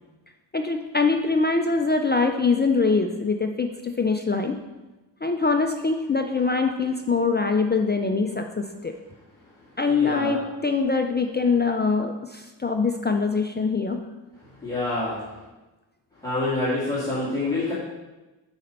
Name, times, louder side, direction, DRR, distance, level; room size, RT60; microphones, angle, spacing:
voice 1, 0.5-4.6 5.2-8.9 9.8-14.0, left 4 dB, 25° left, 4 dB, 0.3 m, -23 dB
voice 2, 9.8-10.4 14.6-15.2 16.2-17.7, left 2 dB, 10° left, -10 dB, 1.8 m, -27 dB
9.0 x 4.3 x 5.4 m, 1.1 s
wide cardioid pair, 175°, 47 cm